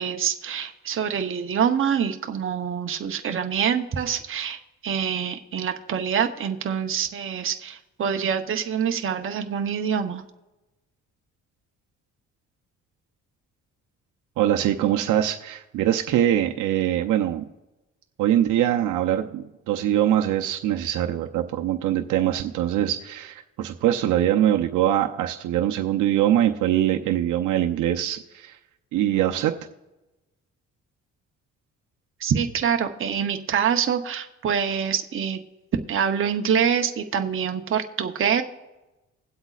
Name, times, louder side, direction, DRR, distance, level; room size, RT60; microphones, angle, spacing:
voice 1, 0.0-4.6 4.8-10.2 32.2-35.4 35.9-38.4, right 7 dB, 45° right, 5 dB, 0.9 m, -25 dB
voice 2, 14.4-17.4 18.2-28.6 28.9-29.5, right 11 dB, 80° right, 3 dB, 0.7 m, -23 dB
20.5 x 7.9 x 2.4 m, 1.0 s
cardioid pair, 90°, 30 cm